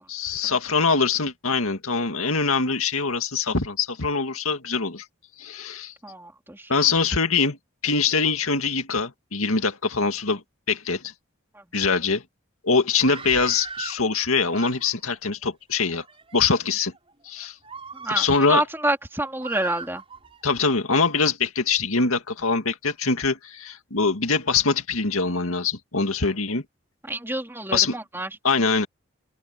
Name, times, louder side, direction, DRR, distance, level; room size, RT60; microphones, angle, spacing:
voice 1, 0.1-5.0 5.4-5.9 6.7-7.6 7.8-11.0 11.7-12.2 12.6-16.0 16.3-16.9 17.3-17.5 18.1-18.6 20.4-26.6 27.7-28.0 28.4-28.9, left 4 dB, 90° left, 2.2 m, -23 dB
voice 2, 6.0-6.7 11.5-11.6 18.0-20.0 27.0-28.3, right 1 dB, 10° right, 3.6 m, -28 dB
Screaming, 12.9-14.0 14.4-15.2 15.8-16.4 16.9-17.1 17.6-18.6 19.4-20.4, right 4 dB, 25° right, 6.3 m, -38 dB
open air
head